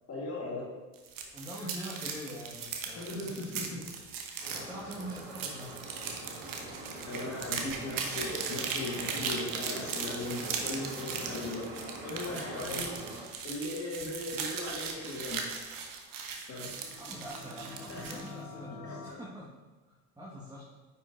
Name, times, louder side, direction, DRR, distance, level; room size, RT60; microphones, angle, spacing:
voice 1, 0.1-0.7 1.6-1.7 2.9-3.8 4.3-4.4 7.1-11.7 12.0-15.4 16.5-16.7 17.9-18.2 18.8-19.0, left 2 dB, 35° left, -4 dB, 1.9 m, -38 dB
sound 1, 0.9-18.3, right 6 dB, 50° right, 1.2 m, -38 dB
voice 2, 1.3-3.1 4.5-6.1 12.6-13.0 17.0-19.5 19.9-20.6, equal, 10° right, -6 dB, 1.7 m, -44 dB
sound 2, 4.4-13.2, right 1 dB, 75° right, 2.0 m, -44 dB
sound 3, 16.6-19.1, left 4 dB, 80° left, 1.0 m, -46 dB
9.4 x 5.7 x 2.7 m, 1.3 s
figure-of-eight pair, 55°, 43 cm